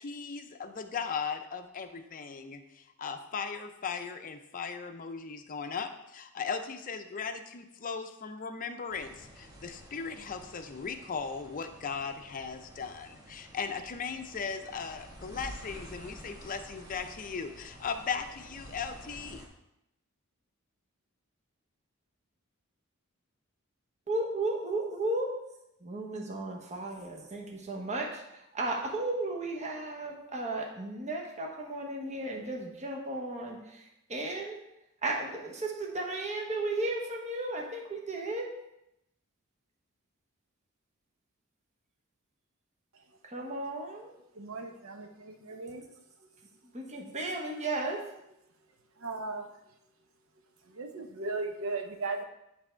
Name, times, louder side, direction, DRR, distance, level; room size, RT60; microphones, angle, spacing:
voice 1, 0.0-19.4, left 5 dB, 40° left, 7 dB, 0.5 m, -38 dB
sound 1, 8.9-19.5, equal, 20° right, 1.3 m, -50 dB
voice 2, 24.1-25.3 25.8-33.8 34.1-34.6 35.0-38.5 43.3-44.1 46.7-48.0, right 2 dB, 35° right, 0 dB, 1.0 m, -34 dB
voice 3, 44.3-45.8 49.0-49.5 50.7-52.2, right 3 dB, 65° right, 5 dB, 0.8 m, -37 dB
9.9 x 3.4 x 4.4 m, 0.85 s
head